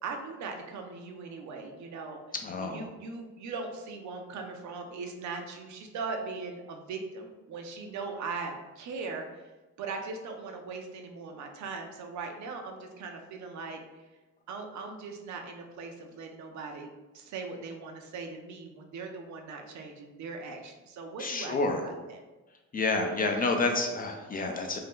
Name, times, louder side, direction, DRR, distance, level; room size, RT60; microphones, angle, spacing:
voice 1, 0.0-2.2 2.6-9.5 9.8-13.8 14.5-22.2, right 4 dB, 70° right, 3 dB, 0.5 m, -39 dB
voice 2, 2.4-2.9 21.2-21.8 22.7-24.8, left 3 dB, 30° left, 4 dB, 0.4 m, -29 dB
2.7 x 2.2 x 3.5 m, 1.1 s
cardioid pair, 90°, 30 cm